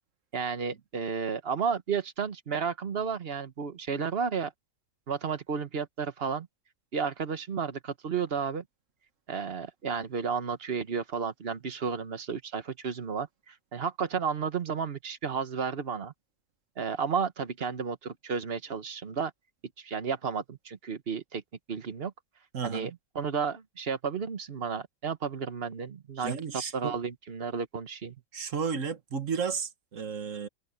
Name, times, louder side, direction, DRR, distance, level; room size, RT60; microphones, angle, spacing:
voice 1, 0.3-4.5 5.1-6.5 6.9-8.6 9.3-16.1 16.8-19.3 19.8-21.4 21.7-22.1 22.6-26.4 26.7-28.2, right 6 dB, 50° right, 1.4 m, -32 dB
voice 2, 22.5-23.0 26.2-26.9 28.3-30.5, right 6 dB, 70° right, 1.7 m, -33 dB
omnidirectional pair, 1.4 m